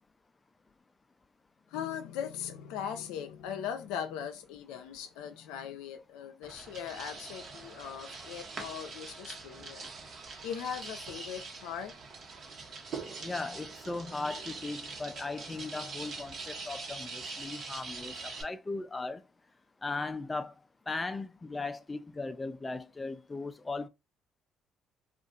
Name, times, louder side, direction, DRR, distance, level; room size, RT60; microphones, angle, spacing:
voice 1, 1.7-9.9 10.4-11.9, left 8 dB, 90° left, 0.5 m, -39 dB
sound 1, 6.4-18.4, right 4 dB, 55° right, 1.1 m, -43 dB
voice 2, 13.2-19.2 19.8-20.5 20.9-23.9, left 3 dB, 25° left, 0.4 m, -37 dB
2.5 x 2.4 x 3.8 m
supercardioid pair, 70°, 0 cm